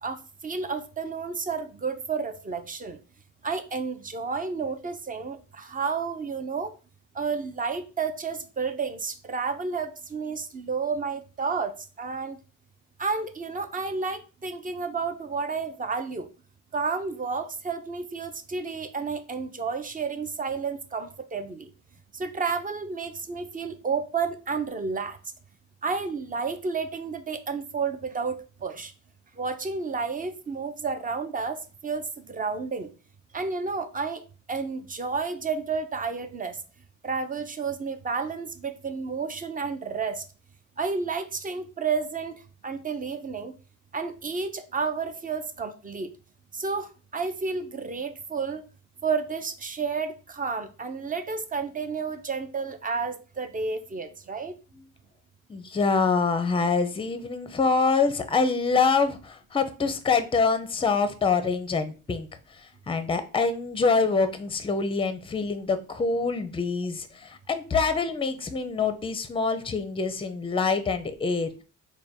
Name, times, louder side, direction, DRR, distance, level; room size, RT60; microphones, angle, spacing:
voice 1, 0.0-3.0 3.4-6.7 7.2-12.4 13.0-16.3 16.7-21.7 22.1-25.2 25.8-28.9 29.4-32.9 33.3-34.2 34.5-36.6 37.0-40.2 40.8-42.4 42.6-43.5 43.9-46.1 46.6-48.6 49.0-54.6, right 5 dB, 30° right, 0.5 m, -31 dB
voice 2, 55.5-71.5, left 4 dB, 20° left, 0.5 m, -25 dB
3.4 x 2.2 x 4.2 m
cardioid pair, 90°, 30 cm